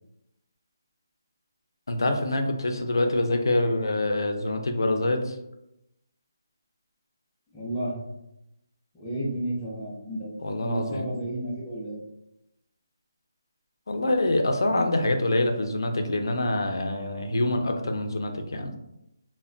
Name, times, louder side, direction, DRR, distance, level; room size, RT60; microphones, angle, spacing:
voice 1, 1.9-5.3 10.4-11.1 13.9-18.7, left 2 dB, 80° left, 5 dB, 0.5 m, -25 dB
voice 2, 7.5-8.0 8.9-12.0, right 1 dB, 5° left, -8 dB, 0.5 m, -32 dB
2.2 x 2.1 x 3.6 m, 0.87 s
hypercardioid pair, 180°, 2 cm